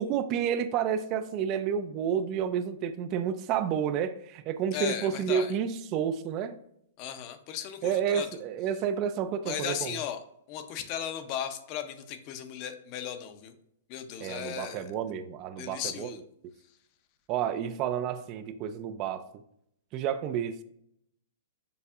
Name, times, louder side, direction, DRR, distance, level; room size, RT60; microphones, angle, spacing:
voice 1, 0.0-6.6 7.8-10.0 14.2-16.1 17.3-19.2 19.9-20.6, right 8 dB, 35° right, 0.3 m, -30 dB
voice 2, 4.7-5.5 7.0-8.4 9.4-13.5 13.9-14.9 15.6-16.2, left 9 dB, 35° left, 0.5 m, -36 dB
6.7 x 2.6 x 2.4 m
hypercardioid pair, 150°, 0 cm